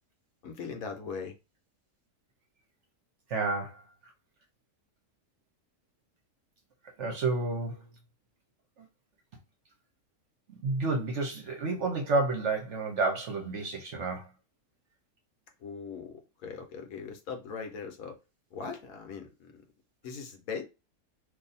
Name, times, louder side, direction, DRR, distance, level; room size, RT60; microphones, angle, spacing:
voice 1, 0.4-1.3 15.6-18.1 18.5-19.5 20.0-20.6, left 5 dB, 65° left, 1.1 m, -40 dB
voice 2, 3.3-3.8 7.0-7.8 10.5-14.3, right 3 dB, 55° right, 1.0 m, -30 dB
2.7 x 2.7 x 4.0 m
omnidirectional pair, 1.6 m